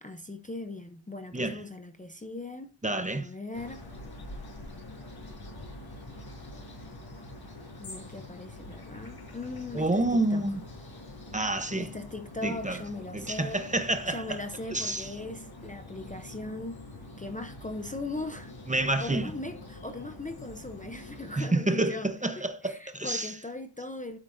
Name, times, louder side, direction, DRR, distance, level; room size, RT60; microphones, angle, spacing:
voice 1, 0.0-2.7 3.1-3.8 7.8-10.4 11.8-13.6 14.1-16.8 17.2-18.5 18.8-24.2, left 2 dB, 15° left, 0.7 m, -39 dB
voice 2, 2.8-3.3 9.7-10.6 11.3-11.9 12.4-12.8 13.1-14.4 14.7-15.1 18.7-19.2 21.4-23.3, right 2 dB, 15° right, 0.9 m, -28 dB
sound 1, 3.5-21.4, left 2 dB, 50° left, 6.1 m, -45 dB
13.0 x 8.4 x 2.7 m
wide cardioid pair, 150°, 50 cm